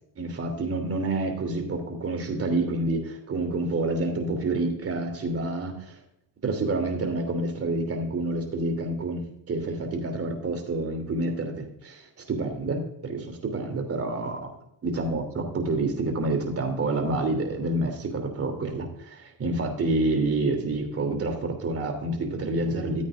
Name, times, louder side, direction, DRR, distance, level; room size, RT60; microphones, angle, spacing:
voice 1, 0.2-6.0 6.4-12.0 12.3-14.5 14.8-23.0, right 2 dB, 40° right, 5 dB, 2.9 m, -28 dB
14.5 x 8.6 x 2.5 m, 0.77 s
cardioid pair, 100°, 37 cm